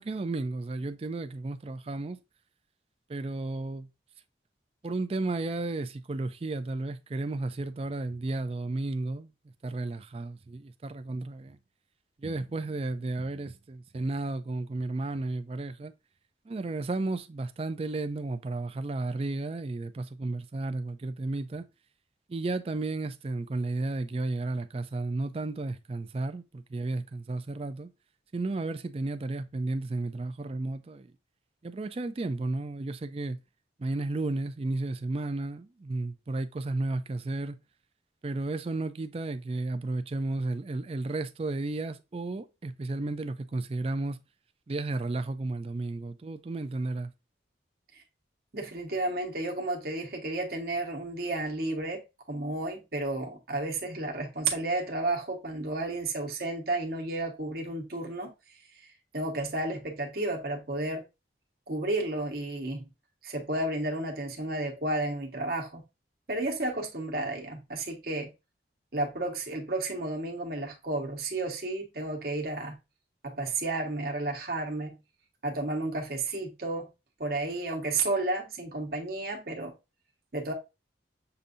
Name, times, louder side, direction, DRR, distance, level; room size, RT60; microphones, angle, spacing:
voice 1, 0.0-2.2 3.1-3.9 4.8-9.3 9.6-11.6 12.2-15.9 16.5-21.6 22.3-27.9 28.3-31.1 31.6-33.4 33.8-37.6 38.2-44.2 44.7-47.1, right 2 dB, 30° right, 0.4 m, -33 dB
voice 2, 48.5-58.3 59.1-61.0 61.7-62.9 63.2-65.8 66.3-68.3 68.9-72.8 73.2-75.0 75.4-76.9 77.2-79.7 80.3-80.5, right 2 dB, 55° right, 1.1 m, -32 dB
6.8 x 2.6 x 2.5 m
head